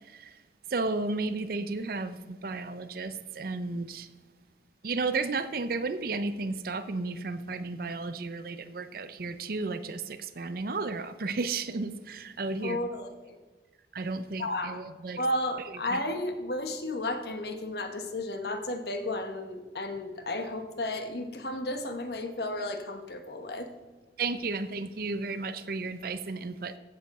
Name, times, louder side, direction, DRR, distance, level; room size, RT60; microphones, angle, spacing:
voice 1, 0.7-4.1 4.8-12.8 13.9-15.2 15.9-16.0 24.2-26.8, right 3 dB, 55° right, 12 dB, 0.6 m, -33 dB
voice 2, 12.6-13.4 14.4-14.8 15.2-23.7, left 1 dB, 65° left, 7 dB, 1.2 m, -33 dB
14.0 x 7.6 x 4.2 m, 1.3 s
head